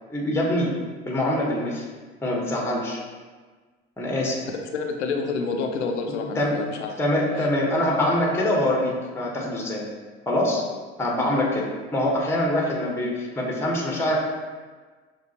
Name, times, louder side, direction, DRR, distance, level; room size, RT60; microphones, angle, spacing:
voice 1, 0.1-0.7 1.1-1.8 2.2-3.0 4.0-4.4 6.4-6.6 7.0-9.9 10.3-10.6 11.0-11.6 11.9-14.2, left 1 dB, 5° left, -2 dB, 1.0 m, -24 dB
voice 2, 4.5-7.0 7.4-7.5, left 4 dB, 85° left, 4 dB, 0.5 m, -28 dB
6.0 x 2.4 x 2.8 m, 1.4 s
hypercardioid pair, 65°, 33 cm